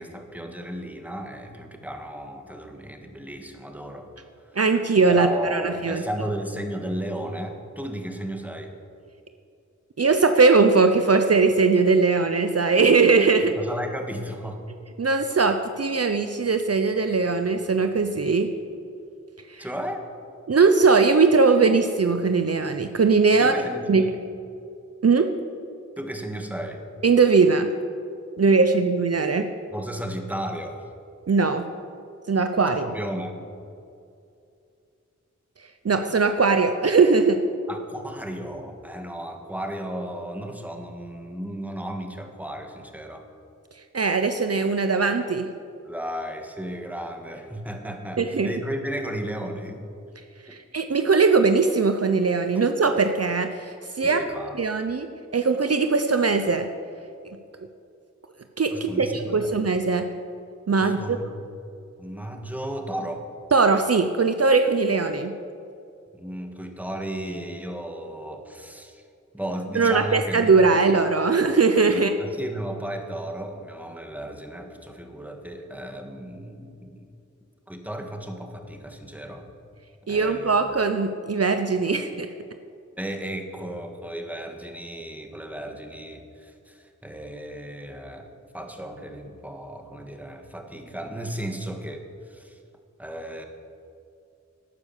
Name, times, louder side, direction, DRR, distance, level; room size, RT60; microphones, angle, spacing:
voice 1, 0.0-4.1 4.4-4.6 5.1-8.8 13.6-14.6 19.6-20.0 23.4-24.1 26.0-26.8 29.7-30.8 32.8-33.4 37.7-43.3 45.8-49.8 54.0-54.6 58.7-59.6 60.8-61.3 62.0-63.3 66.1-69.1 69.3-70.5 70.7-70.8 71.8-77.1 77.7-79.5 80.1-80.7 83.0-92.6 93.0-93.4, right 1 dB, 5° right, 4 dB, 1.6 m, -34 dB
voice 2, 4.6-6.0 10.0-13.5 15.0-18.5 19.5-19.7 20.5-23.5 23.9-24.0 25.0-25.3 27.0-27.7 28.4-29.5 31.3-31.6 32.3-32.9 35.8-37.4 43.9-45.5 48.2-48.5 50.5-54.2 54.6-56.7 58.6-60.1 60.7-61.0 63.5-65.3 69.7-72.1 80.1-82.3, right 4 dB, 55° right, 7 dB, 0.7 m, -20 dB
12.0 x 9.7 x 7.1 m, 2.5 s
wide cardioid pair, 65°, 30 cm